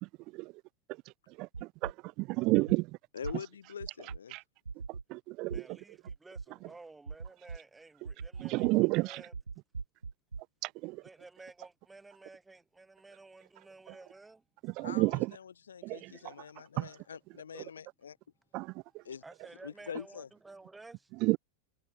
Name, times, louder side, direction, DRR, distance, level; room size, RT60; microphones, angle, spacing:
voice 1, 0.0-0.5 1.0-3.0 4.0-4.4 4.9-5.8 8.4-9.2 10.6-11.0 13.9-14.0 14.6-15.4 15.8-16.5 16.8-17.0 17.5-17.7 18.5-19.0 21.2-21.4, right 23 dB, 40° right, 0.4 m, -32 dB
sound 1, 1.5-1.9 2.5-2.8 3.2-3.3 3.8-4.2 4.7-5.0 5.5-5.6 6.1-6.5 7.1-7.6 8.1-8.7 9.3-10.4, right 5 dB, 75° right, 2.0 m, -40 dB
voice 2, 3.1-4.3 14.8-18.2 19.0-19.2 19.6-20.3, left 7 dB, 70° left, 3.2 m, -44 dB
voice 3, 5.5-9.3 11.0-14.4 19.2-21.1, right 3 dB, 10° right, 6.6 m, -53 dB
figure-of-eight pair, 90°, 0 cm